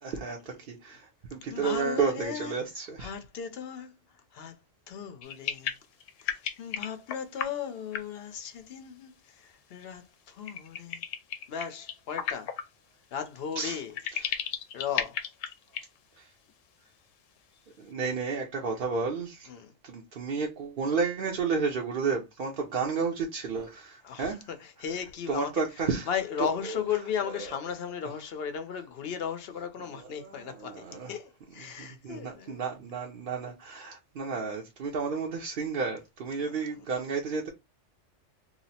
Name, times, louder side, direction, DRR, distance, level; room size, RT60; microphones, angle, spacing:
voice 1, 0.0-3.1 13.6-13.8 14.1-14.3 16.2-16.3 17.8-19.5 19.8-24.4 25.3-26.1 26.4-26.5 27.3-27.4 27.8-27.9 29.9-31.1 31.8-37.5, right 5 dB, 55° right, 0.7 m, -32 dB
voice 2, 1.5-2.5 3.0-3.9 4.3-4.5 4.9-5.7 6.2-11.0 11.5-12.6 13.1-13.9 14.7-15.2 19.5-19.7 24.0-25.5 26.1-32.6 36.4-36.5, left 8 dB, 60° left, 0.8 m, -36 dB
sound 1, 5.2-7.5 7.9-8.2 10.4-12.6 13.3-13.4 13.9-15.9 16.2-16.3 16.5-16.6, left 8 dB, 85° left, 0.9 m, -34 dB
2.9 x 2.0 x 4.0 m
omnidirectional pair, 1.3 m